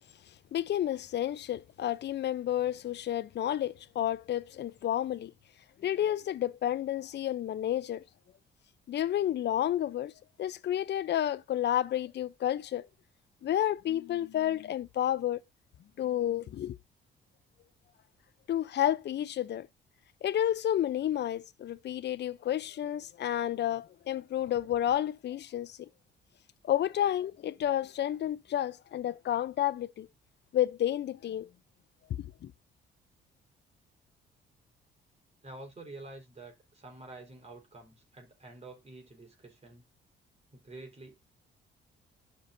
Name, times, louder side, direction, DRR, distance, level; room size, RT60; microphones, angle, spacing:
voice 1, 0.5-5.3 5.8-8.0 8.9-10.1 10.4-12.9 13.4-15.4 16.0-16.8 18.5-19.7 20.2-25.9 26.6-30.1 30.5-31.5 32.2-32.5, left 11 dB, 60° left, 0.7 m, -31 dB
voice 2, 35.4-39.8 40.5-41.2, right 2 dB, 30° right, 4.4 m, -48 dB
12.0 x 5.8 x 2.7 m
cardioid pair, 90°, 20 cm